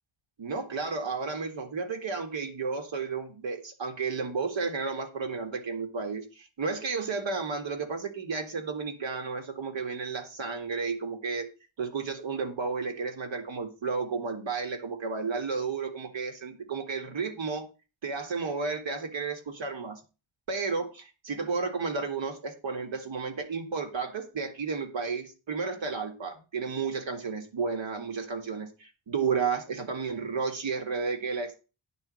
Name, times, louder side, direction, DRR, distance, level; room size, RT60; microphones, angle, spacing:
voice 1, 0.4-11.5 11.8-17.7 18.0-20.0 20.5-31.6, right 4 dB, 70° right, 5 dB, 2.0 m, -32 dB
9.8 x 4.1 x 7.5 m, 0.32 s
wide cardioid pair, 175°, 47 cm